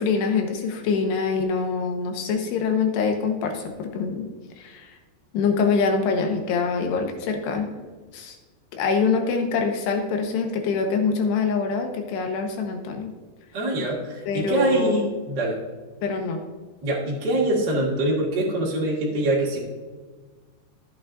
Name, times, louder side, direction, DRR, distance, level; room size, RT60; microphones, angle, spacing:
voice 1, 0.0-4.3 4.6-5.0 5.3-7.7 8.1-8.4 8.7-13.1 14.3-15.1 16.0-16.4, left 5 dB, 85° left, 4 dB, 3.3 m, -24 dB
voice 2, 13.5-15.6 16.8-19.6, right 1 dB, 35° right, -5 dB, 1.8 m, -24 dB
13.5 x 8.5 x 2.6 m, 1.4 s
omnidirectional pair, 4.7 m